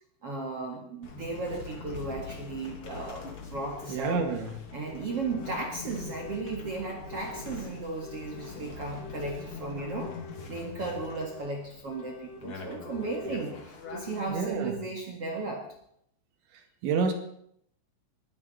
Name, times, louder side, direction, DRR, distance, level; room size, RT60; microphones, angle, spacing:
voice 1, 0.2-4.2 4.7-10.1 10.5-15.7, right 3 dB, 50° right, 1 dB, 1.8 m, -35 dB
sound 1, 1.0-14.3, left 4 dB, 40° left, 2.4 m, -43 dB
sound 2, 2.9-3.0 3.9-4.0 4.9-5.6 6.1-6.6 7.0-7.6 8.0-8.6 9.0-9.5 10.0-10.5 10.9-11.5 11.9-12.4 12.9-13.4 13.9-14.4, left 6 dB, 65° left, 4.9 m, -47 dB
voice 2, 3.9-4.5 14.3-14.7 16.8-17.1, right 5 dB, 75° right, 5 dB, 4.2 m, -28 dB
20.0 x 16.0 x 4.3 m, 0.69 s
omnidirectional pair, 5.5 m